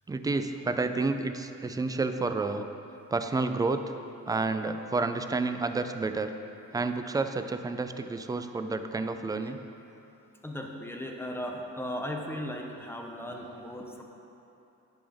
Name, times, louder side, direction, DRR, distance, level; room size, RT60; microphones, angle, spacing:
voice 1, 0.1-2.7 3.1-3.9 4.3-6.3 6.7-9.6, right 3 dB, 15° right, 8 dB, 0.3 m, -30 dB
voice 2, 10.4-14.0, equal, 10° left, 1 dB, 0.8 m, -37 dB
10.0 x 5.5 x 3.5 m, 2.9 s
cardioid pair, 90°, 30 cm